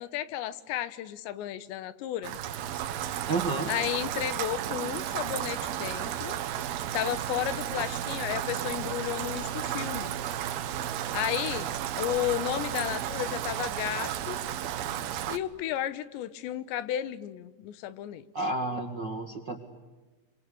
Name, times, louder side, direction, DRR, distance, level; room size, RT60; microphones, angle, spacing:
voice 1, 0.0-2.4 3.7-6.4 6.9-10.2 11.1-11.7 12.0-14.4 15.3-18.2, left 12 dB, 85° left, 15 dB, 3.3 m, -33 dB
Rain, 2.2-15.4, right 10 dB, 70° right, 2.8 m, -33 dB
voice 2, 3.3-3.7 18.3-19.6, right 3 dB, 50° right, 5 dB, 1.4 m, -30 dB
26.0 x 26.0 x 8.4 m, 1.2 s
omnidirectional pair, 5.0 m